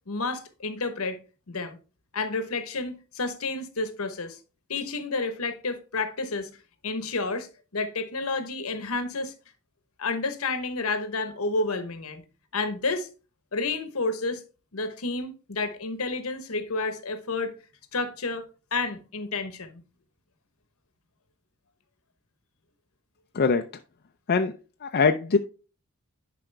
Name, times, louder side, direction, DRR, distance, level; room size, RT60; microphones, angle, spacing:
voice 1, 0.1-1.2 1.5-1.8 2.1-4.4 4.7-6.5 6.8-9.3 10.0-12.2 12.5-13.1 13.5-14.4 14.7-17.5 17.9-18.4 18.7-19.8, left 3 dB, 75° left, 1.1 m, -30 dB
voice 2, 24.8-25.4, left 4 dB, 50° left, 0.5 m, -22 dB
10.0 x 5.0 x 3.4 m
head